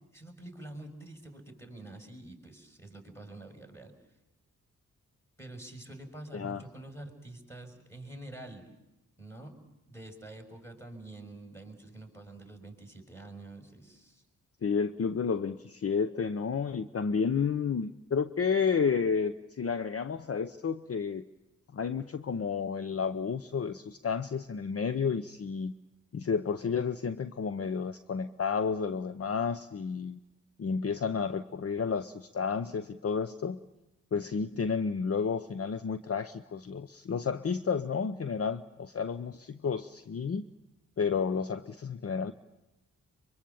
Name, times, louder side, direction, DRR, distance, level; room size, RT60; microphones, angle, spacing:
voice 1, 0.1-4.0 5.4-8.7 9.2-9.6 9.9-14.2, right 2 dB, 10° left, 3 dB, 6.1 m, -47 dB
voice 2, 6.3-6.6 14.6-21.2 21.7-25.7 26.1-30.2 30.6-33.6 34.1-40.5 41.0-42.3, left 6 dB, 45° left, 11 dB, 0.8 m, -31 dB
24.0 x 23.5 x 7.1 m, 0.99 s
cardioid pair, 50°, 33 cm